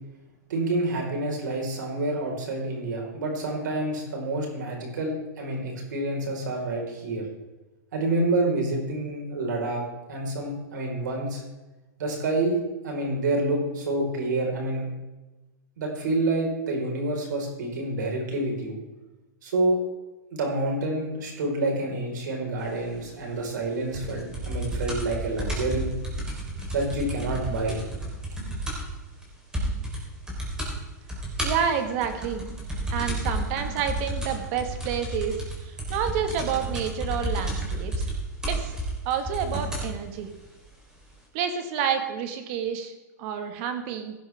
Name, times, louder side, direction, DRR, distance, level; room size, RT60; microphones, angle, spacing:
voice 1, 0.5-7.2 7.9-11.4 12.0-12.6 12.8-14.9 15.8-18.8 19.4-19.8 20.3-25.9 26.7-27.8, right 2 dB, 80° right, 1 dB, 4.9 m, -28 dB
sound 1, 23.9-29.0 29.2-29.3 29.5-30.0 30.3-30.7 31.1-39.9 40.7-40.8, right 1 dB, 5° right, 4.2 m, -31 dB
voice 2, 31.4-32.4 32.9-38.1 38.5-38.8 39.1-40.3 41.3-42.9 43.2-44.1, right 7 dB, 45° right, 7 dB, 1.9 m, -29 dB
16.5 x 11.0 x 3.7 m, 1.1 s
hypercardioid pair, 135°, 10 cm